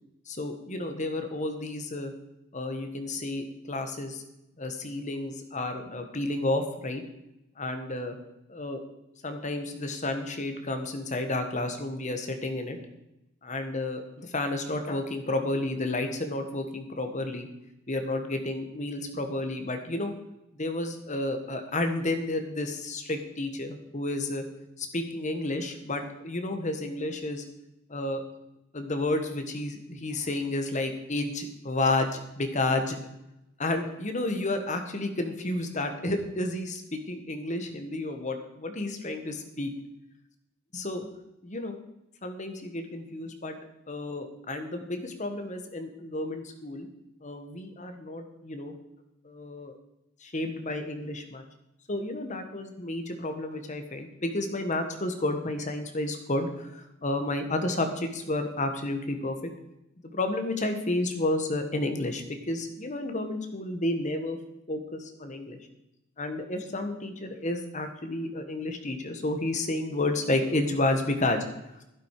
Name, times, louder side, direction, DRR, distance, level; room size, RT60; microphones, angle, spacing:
voice 1, 0.3-2.1 2.5-4.2 4.6-7.0 7.6-8.2 8.5-8.8 9.2-12.8 13.4-17.5 17.9-20.1 20.5-24.4 24.8-27.4 27.9-28.2 28.7-33.0 33.6-39.7 40.7-41.1 41.4-41.8 42.2-43.6 43.9-46.9 47.2-48.7 49.2-49.7 50.2-51.4 51.9-59.5 60.1-64.4 64.7-65.6 66.2-71.4, left 2 dB, 35° left, 6 dB, 1.5 m, -31 dB
12.0 x 11.5 x 4.9 m, 0.88 s
head